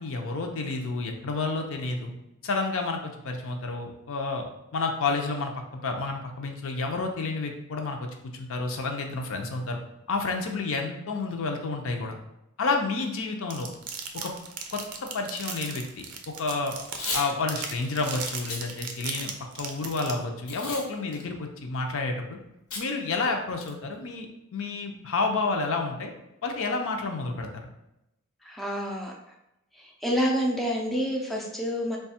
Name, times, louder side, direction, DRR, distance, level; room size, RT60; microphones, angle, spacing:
voice 1, 0.0-2.1 2.4-4.5 4.7-9.8 10.1-12.2 12.6-13.7 14.1-14.3 14.7-15.8 16.4-16.8 17.1-22.4 22.8-24.3 24.5-26.1 26.4-27.7, left 3 dB, 65° left, 3 dB, 0.5 m, -30 dB
sound 1, 13.5-20.1, right 6 dB, 90° right, 0.5 m, -36 dB
Packing tape duct tape / Tearing, 16.8-17.3 17.7-17.9 18.4-18.6 19.1-19.7 20.5-20.9 21.1-21.2 22.7-22.9 23.2-23.3 23.6-23.9, left 3 dB, 85° left, 0.9 m, -34 dB
voice 2, 28.4-29.2 29.8-32.0, equal, ahead, -2 dB, 0.4 m, -28 dB
3.2 x 2.3 x 4.2 m, 0.86 s
head